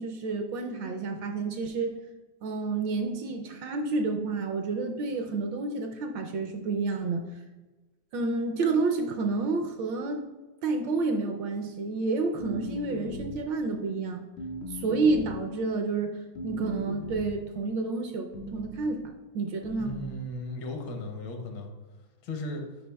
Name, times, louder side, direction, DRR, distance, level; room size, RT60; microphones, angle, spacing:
voice 1, 0.0-1.9 2.4-7.2 8.1-10.2 10.6-14.2 14.8-16.1 16.4-19.0 19.3-19.9, right 3 dB, 75° right, 4 dB, 1.2 m, -29 dB
sound 1, 12.4-13.5 14.4-15.5 16.4-17.5 18.3-18.9 19.6-20.2, left 1 dB, 90° left, 1.6 m, -39 dB
voice 2, 19.8-21.7 22.2-22.6, left 1 dB, 75° left, 4 dB, 1.5 m, -36 dB
8.4 x 5.5 x 2.3 m, 1.2 s
omnidirectional pair, 2.3 m